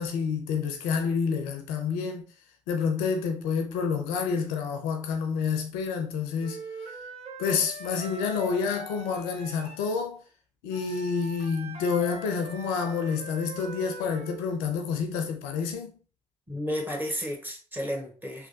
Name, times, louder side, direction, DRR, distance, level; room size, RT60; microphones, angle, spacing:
voice 1, 0.0-2.3 2.7-6.6 7.4-10.2 10.6-16.0, left 5 dB, 80° left, 0.4 m, -28 dB
Wind instrument woodwind instrument, 6.4-9.9 10.7-14.4, right 2 dB, 40° right, 1.2 m, -42 dB
voice 2, 16.5-18.5, equal, 10° right, 1.2 m, -32 dB
3.2 x 2.1 x 2.6 m
hypercardioid pair, 40°, 15 cm